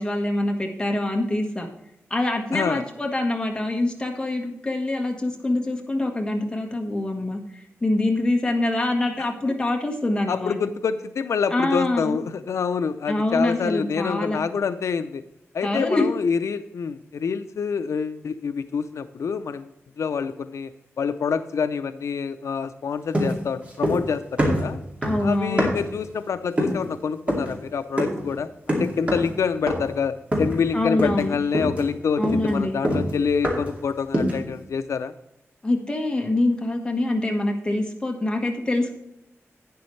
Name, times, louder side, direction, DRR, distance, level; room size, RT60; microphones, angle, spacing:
voice 1, 0.0-1.7 2.1-7.4 7.8-10.6 11.5-12.2 13.1-14.4 15.6-16.1 25.0-25.7 30.7-31.3 32.2-32.8 35.6-39.0, left 2 dB, 15° left, 2 dB, 1.4 m, -25 dB
voice 2, 2.5-2.8 9.2-9.3 10.3-15.2 15.5-19.7 20.0-20.7 21.0-24.8 25.2-35.1, left 6 dB, 80° left, 10 dB, 0.4 m, -26 dB
sound 1, 23.1-24.1 24.4-26.0 26.6-26.9 27.3-27.6 28.0-28.3 28.7-29.4 29.7-30.0 30.3-30.7 31.0-31.3 31.5-33.8 34.1-34.5, equal, 25° right, 2.4 m, -25 dB
11.5 x 9.0 x 3.2 m, 0.85 s
wide cardioid pair, 165°, 5 cm